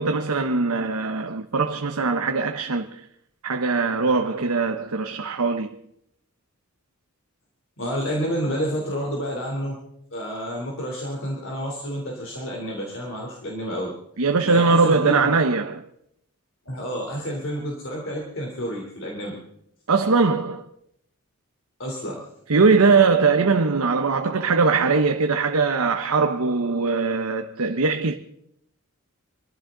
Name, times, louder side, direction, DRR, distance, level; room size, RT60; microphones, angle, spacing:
voice 1, 0.0-3.0 3.4-5.8 14.2-15.8 19.9-20.6 22.5-28.1, right 4 dB, 80° right, 0.9 m, -21 dB
voice 2, 7.8-9.8 10.1-13.9 14.4-15.3 16.6-19.4 21.8-22.3, equal, 60° left, 3.4 m, -29 dB
24.0 x 15.0 x 3.9 m
head